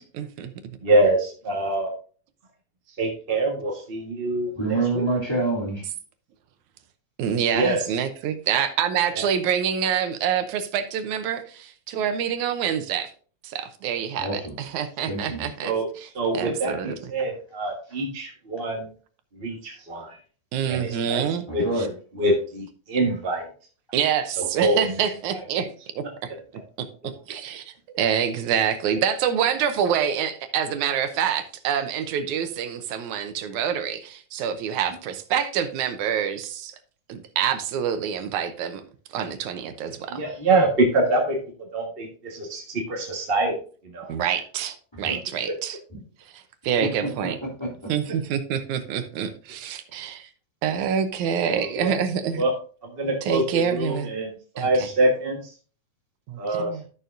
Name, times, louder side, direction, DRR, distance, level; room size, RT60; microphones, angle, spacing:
voice 1, 0.0-0.8 7.2-13.1 13.4-15.7 16.3-17.0 20.5-21.5 21.8-21.9 23.9-25.7 26.0-26.3 26.8-36.8 37.1-38.8 39.1-40.2 44.1-45.8 46.3-47.4 47.9-50.3 50.6-52.4 53.2-54.1 54.6-54.7 56.3-56.8, right 8 dB, 80° right, 9 dB, 2.2 m, -26 dB
voice 2, 0.8-1.9 3.0-4.8 7.5-7.9 9.1-9.2 15.6-15.8 16.1-18.9 19.3-20.2 20.7-21.2 21.5-21.6 22.1-23.5 24.4-24.9 40.1-41.4 41.7-43.6 43.8-44.1 45.5-45.6 51.6-52.0 52.3-52.5 52.8-55.5 56.4-56.8, right 2 dB, 35° right, 0 dB, 0.9 m, -25 dB
voice 3, 4.6-5.9 14.2-14.6 15.1-15.4 21.5-21.9 44.9-45.2 46.8-47.9, right 2 dB, 10° left, -4 dB, 2.6 m, -27 dB
12.5 x 6.7 x 2.6 m, 0.41 s
omnidirectional pair, 3.4 m